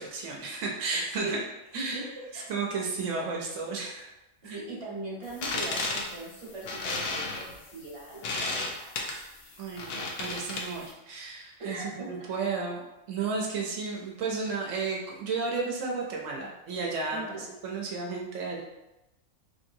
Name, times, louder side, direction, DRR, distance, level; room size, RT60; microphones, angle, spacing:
voice 1, 0.0-1.4 1.7-2.0 2.5-4.1 4.4-4.6 9.6-12.8 13.1-17.2 17.6-18.6, right 4 dB, 80° right, -2 dB, 1.0 m, -33 dB
voice 2, 0.9-1.4 1.7-2.0 2.3-2.5 4.4-9.6 11.6-12.3 17.1-17.5, right 2 dB, 30° right, -6 dB, 0.9 m, -40 dB
sound 1, 5.3-10.9, left 3 dB, 65° left, 0.7 m, -34 dB
3.2 x 2.7 x 2.6 m, 0.93 s
omnidirectional pair, 1.3 m